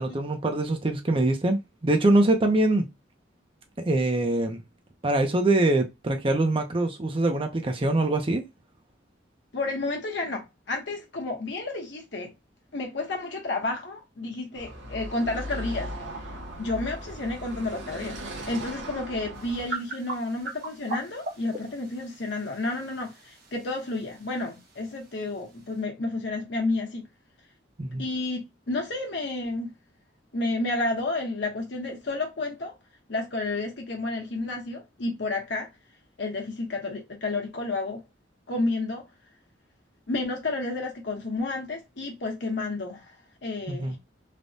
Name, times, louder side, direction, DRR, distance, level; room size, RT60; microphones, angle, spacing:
voice 1, 0.0-2.9 3.9-4.6 5.0-8.4 27.8-28.0 43.7-43.9, right 2 dB, 30° right, 0.5 m, -23 dB
voice 2, 9.5-12.3 12.7-15.9 16.6-18.2 18.5-27.0 28.0-29.7 30.3-32.8 33.1-35.7 36.2-38.0 38.5-39.1 40.1-43.1 43.4-44.0, left 2 dB, 65° left, 0.9 m, -31 dB
Car passing by / Traffic noise roadway noise, 14.5-19.7, equal, 85° right, 1.1 m, -38 dB
sound 1, 19.3-25.8, right 2 dB, 55° right, 1.2 m, -41 dB
3.3 x 2.1 x 2.5 m
head